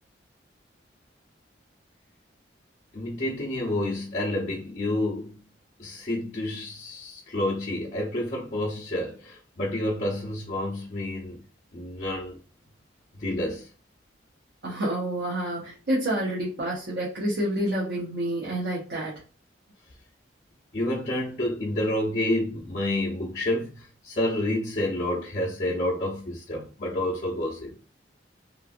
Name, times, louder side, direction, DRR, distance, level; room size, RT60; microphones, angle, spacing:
voice 1, 2.9-5.3 5.8-11.4 11.7-12.4 13.2-13.7 20.7-27.7, left 1 dB, 40° left, 0.7 m, -29 dB
voice 2, 14.6-19.2, right 1 dB, 60° right, 0.9 m, -28 dB
3.2 x 2.4 x 2.5 m
head